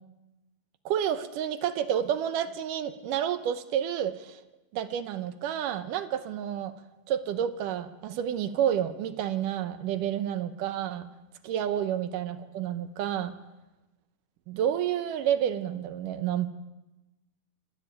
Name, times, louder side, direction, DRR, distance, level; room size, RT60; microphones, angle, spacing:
voice 1, 0.9-4.4 4.7-6.7 7.1-11.1 11.4-13.3 14.5-16.5, right 10 dB, 75° right, 11 dB, 2.3 m, -29 dB
25.5 x 12.0 x 8.9 m, 1.0 s
omnidirectional pair, 4.1 m